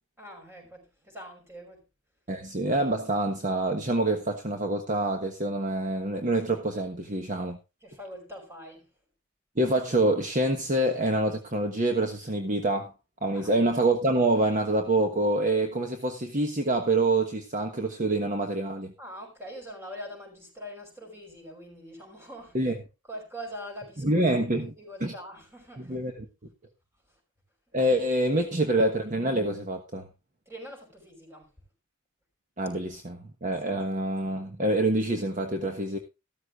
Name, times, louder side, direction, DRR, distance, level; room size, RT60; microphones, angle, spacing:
voice 1, 0.2-1.9 7.8-8.9 13.3-13.5 19.0-22.6 23.1-24.5 24.8-26.0 27.1-27.2 27.7-28.5 30.5-31.5, equal, 10° right, 5.4 m, -43 dB
voice 2, 2.3-7.6 9.6-12.9 13.2-18.9 22.5-22.8 24.0-24.7 25.0-25.1 25.8-26.1 27.7-30.1 32.6-36.0, right 2 dB, 40° right, 1.3 m, -26 dB
14.5 x 13.0 x 2.5 m
head